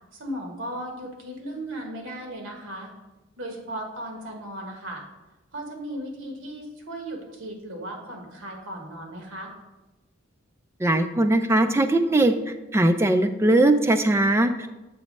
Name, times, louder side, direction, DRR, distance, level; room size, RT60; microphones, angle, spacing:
voice 1, 0.1-2.9 3.4-5.0 5.5-9.5, right 1 dB, 75° right, 2 dB, 1.3 m, -36 dB
voice 2, 10.8-12.3 12.7-14.7, right 1 dB, 15° right, 7 dB, 0.3 m, -20 dB
6.9 x 3.1 x 5.3 m, 1.1 s
head